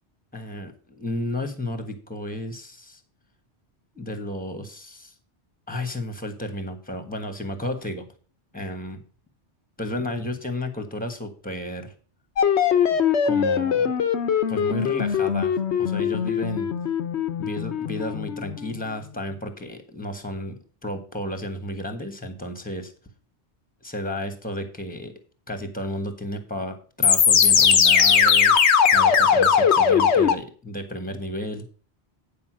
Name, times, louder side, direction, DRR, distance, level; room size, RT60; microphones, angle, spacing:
voice 1, 0.3-3.0 3.9-5.1 5.7-8.0 8.5-9.0 9.8-11.9 12.9-13.0 13.2-13.9 14.5-16.7 17.4-22.9 23.8-25.1 25.5-28.6 28.9-31.7, left 1 dB, 10° left, 7 dB, 1.5 m, -32 dB
sound 1, 12.4-18.8 27.0-30.3, left 7 dB, 75° left, 1.2 m, -20 dB
9.7 x 5.4 x 6.1 m, 0.39 s
omnidirectional pair, 1.1 m